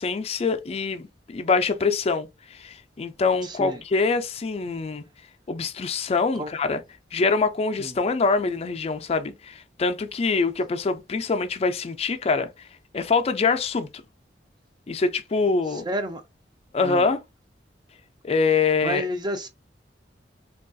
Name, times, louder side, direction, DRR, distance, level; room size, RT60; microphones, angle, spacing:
voice 1, 0.0-5.0 5.5-6.8 7.1-12.5 12.9-13.9 14.9-15.9 16.7-17.2 18.2-19.1, left 4 dB, 35° left, 0.4 m, -24 dB
voice 2, 3.4-3.8 6.3-6.5 7.8-8.0 15.7-16.2 16.8-17.1 18.8-19.5, right 1 dB, 25° right, 0.5 m, -30 dB
3.0 x 2.3 x 2.6 m
head